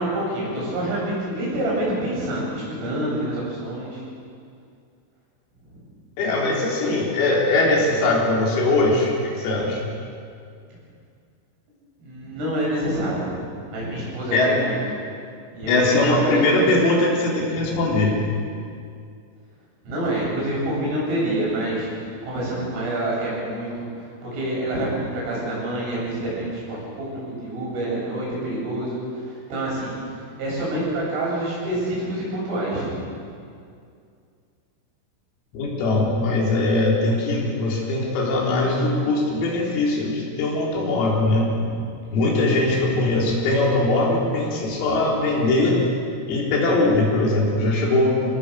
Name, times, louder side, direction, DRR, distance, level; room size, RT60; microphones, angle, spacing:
voice 1, 0.0-4.0 12.0-14.8 15.5-16.4 17.5-18.1 19.8-30.0 30.4-33.0 41.3-41.8 42.6-43.0 44.8-45.1, right 1 dB, 70° right, -5 dB, 10.5 m, -27 dB
voice 2, 6.2-9.8 14.3-14.5 15.7-18.2 35.5-41.5 42.1-45.8 46.3-48.4, left 2 dB, 85° left, -3 dB, 6.7 m, -21 dB
28.0 x 19.5 x 6.5 m, 2.3 s
omnidirectional pair, 6.0 m